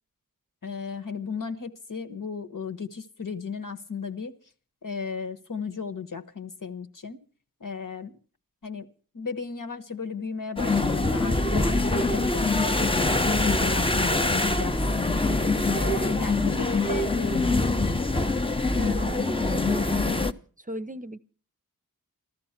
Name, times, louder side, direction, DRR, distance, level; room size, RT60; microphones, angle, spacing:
voice 1, 0.6-4.4 4.8-7.2 7.6-8.2 8.6-8.9 9.1-13.1 13.4-15.2 15.7-17.8, left 5 dB, 65° left, 8 dB, 1.3 m, -35 dB
sound 1, 10.6-20.3, left 2 dB, 15° left, 0.7 m, -24 dB
voice 2, 18.7-20.3 20.6-21.2, right 1 dB, 25° right, 12 dB, 0.7 m, -37 dB
14.0 x 13.5 x 5.8 m, 0.41 s
wide cardioid pair, 80°, 34 cm